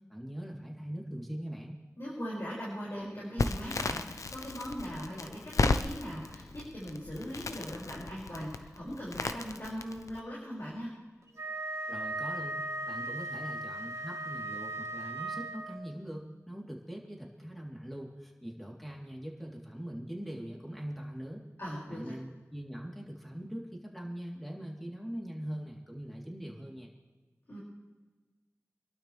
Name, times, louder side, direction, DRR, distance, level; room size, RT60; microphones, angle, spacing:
voice 1, 0.1-1.8 11.9-21.4 21.9-26.9, equal, ahead, -2 dB, 3.4 m, -42 dB
voice 2, 2.0-10.9 21.6-22.1 27.5-27.6, equal, 50° left, -7 dB, 6.0 m, -40 dB
Crackle, 3.4-10.2, left 3 dB, 85° left, 0.7 m, -34 dB
Wind instrument woodwind instrument, 11.3-15.9, right 2 dB, 65° right, 1.7 m, -37 dB
27.5 x 12.0 x 3.4 m, 1.2 s
cardioid pair, 40°, 5 cm